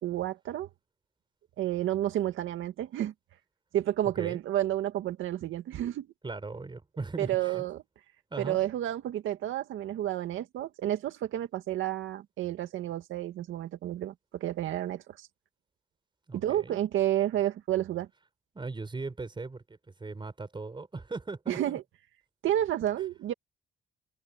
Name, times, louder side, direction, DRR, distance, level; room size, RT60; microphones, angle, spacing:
voice 1, 0.0-0.7 1.6-3.1 3.7-6.1 7.2-7.8 8.4-15.3 16.3-18.1 21.5-21.8 22.4-23.3, right 12 dB, 80° right, 2.0 m, -30 dB
voice 2, 4.0-4.4 6.2-7.7 8.3-8.6 16.3-16.8 18.5-21.8, right 3 dB, 25° right, 4.7 m, -39 dB
cardioid pair, 90°, 20 cm